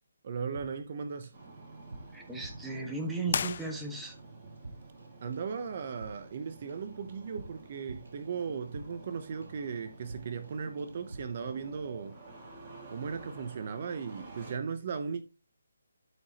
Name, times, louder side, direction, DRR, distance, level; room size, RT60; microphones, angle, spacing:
voice 1, 0.2-1.3 5.2-12.2 12.9-15.2, right 6 dB, 40° right, 0.8 m, -37 dB
sound 1, 0.6-1.5 1.7-3.7 4.0-4.3 4.6-5.1 5.3-9.1 9.4-9.7 10.0-10.5 10.8-11.4, right 2 dB, 80° right, 2.9 m, -49 dB
Engine starting, 1.3-14.6, right 3 dB, 25° right, 2.8 m, -51 dB
voice 2, 2.1-4.2, right 3 dB, 5° right, 1.3 m, -36 dB
sound 2, 3.3-4.3, left 6 dB, 45° left, 0.3 m, -35 dB
12.5 x 4.9 x 2.9 m
hypercardioid pair, 160°, 0 cm